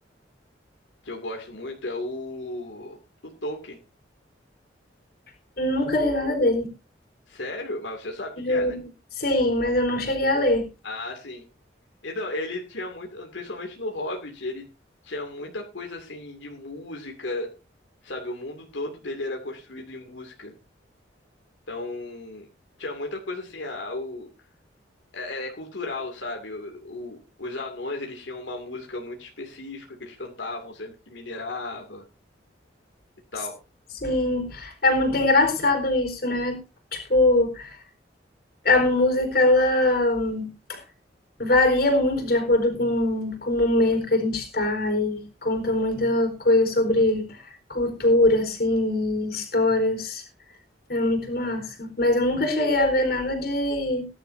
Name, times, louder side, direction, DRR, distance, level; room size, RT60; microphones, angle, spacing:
voice 1, 1.0-3.0 3.2-3.8 7.3-8.8 10.8-11.4 12.0-14.6 15.0-17.5 18.0-20.5 21.7-22.5 22.8-24.3 25.1-32.0 33.3-33.6, left 2 dB, 85° left, 1 dB, 2.4 m, -34 dB
voice 2, 5.6-6.7 8.4-8.7 9.2-10.7 34.0-36.6 36.9-37.7 38.6-40.8 41.4-47.4 47.7-50.2 50.9-54.1, left 2 dB, 55° left, 5 dB, 4.2 m, -22 dB
20.0 x 11.0 x 2.7 m, 0.29 s
head